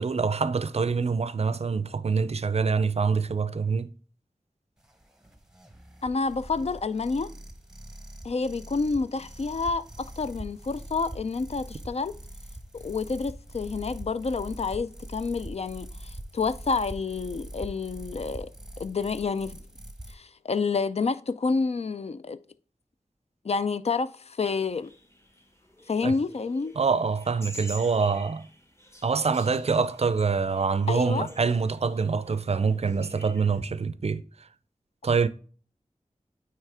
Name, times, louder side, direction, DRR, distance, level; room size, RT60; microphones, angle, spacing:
voice 1, 0.0-3.9 26.0-26.1 26.8-28.5 29.0-34.5 35.0-35.3, right 5 dB, 50° right, 0.4 m, -25 dB
sound 1, 4.8-20.1, right 1 dB, 5° right, 0.9 m, -43 dB
voice 2, 6.0-7.3 8.2-12.1 12.7-18.5 18.8-19.6 20.1-22.4 23.4-24.9 25.9-26.7 30.9-31.3, left 4 dB, 50° left, 0.4 m, -29 dB
sound 2, 24.4-33.6, equal, 20° left, 1.1 m, -48 dB
9.1 x 3.2 x 3.4 m
wide cardioid pair, 60°, 13 cm